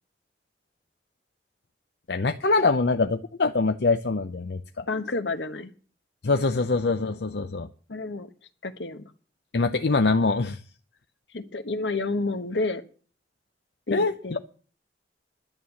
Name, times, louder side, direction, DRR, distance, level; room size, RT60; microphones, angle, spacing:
voice 1, 2.1-4.6 6.2-7.7 9.5-10.6 13.9-14.4, left 3 dB, 70° left, 7 dB, 0.7 m, -24 dB
voice 2, 4.9-5.7 7.9-8.3 8.6-9.1 11.3-12.8 13.9-14.4, left 3 dB, 90° left, 10 dB, 1.2 m, -30 dB
11.0 x 9.6 x 7.2 m, 0.41 s
head